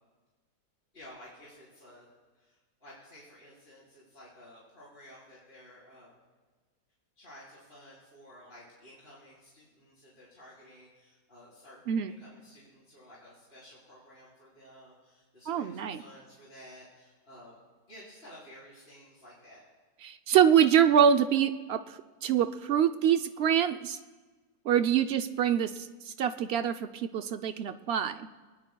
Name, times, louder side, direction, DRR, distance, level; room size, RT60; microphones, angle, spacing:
voice 1, 0.9-2.1 2.4-6.1 7.2-17.6 17.9-19.6, equal, 40° left, -9 dB, 4.6 m, -53 dB
voice 2, 15.5-16.0 20.0-24.0 24.7-28.3, right 8 dB, 70° right, 9 dB, 0.6 m, -25 dB
23.5 x 19.5 x 2.3 m, 1.3 s
omnidirectional pair, 1.6 m